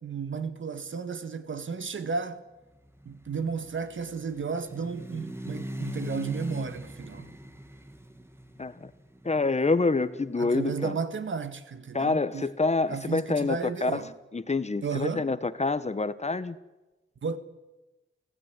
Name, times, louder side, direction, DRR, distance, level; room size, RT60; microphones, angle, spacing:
voice 1, 0.0-2.4 3.0-7.3 10.4-12.5 12.9-14.1 14.8-15.3 17.2-17.4, right 5 dB, 70° right, 1.6 m, -33 dB
sound 1, 2.8-10.8, equal, 10° right, 2.1 m, -40 dB
voice 2, 8.6-8.9 9.2-10.9 11.9-14.0 14.3-16.6, left 3 dB, 30° left, 1.1 m, -27 dB
29.0 x 16.5 x 9.6 m
wide cardioid pair, 85°, 21 cm